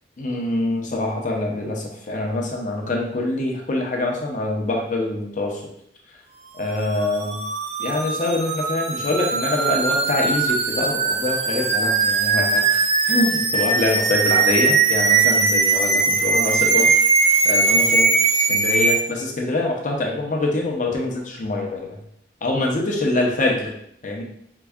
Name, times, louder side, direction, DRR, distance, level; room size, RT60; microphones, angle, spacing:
voice 1, 0.2-5.6 6.6-7.4 7.8-12.8 13.1-16.9 17.4-22.0 22.4-23.7 24.0-24.2, left 2 dB, 45° left, 0 dB, 0.7 m, -24 dB
sound 1, 6.8-19.0, right 4 dB, 40° right, 0.4 m, -20 dB
4.6 x 2.6 x 2.3 m, 0.70 s
head